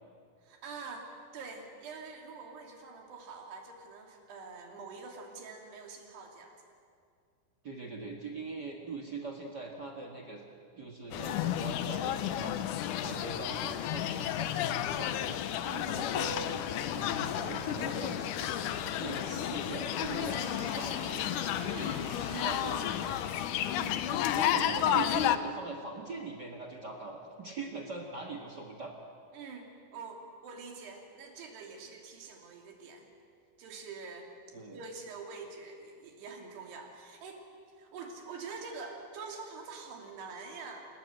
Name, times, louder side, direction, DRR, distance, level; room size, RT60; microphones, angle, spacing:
voice 1, 0.4-6.6 15.6-16.3 21.6-22.6 29.3-33.1 33.6-34.3 34.7-37.4 37.8-40.9, right 4 dB, 75° right, 1 dB, 4.9 m, -45 dB
voice 2, 7.6-10.4 10.8-15.5 15.9-16.6 16.9-18.2 18.6-21.3 22.4-22.8 23.9-28.9 34.5-34.8, right 3 dB, 45° right, 3 dB, 1.3 m, -42 dB
sound 1, 11.1-25.4, left 11 dB, 85° left, 1.8 m, -32 dB
sound 2, 16.6-23.2, equal, ahead, 7.1 m, -47 dB
28.5 x 17.0 x 8.1 m, 2.3 s
omnidirectional pair, 4.7 m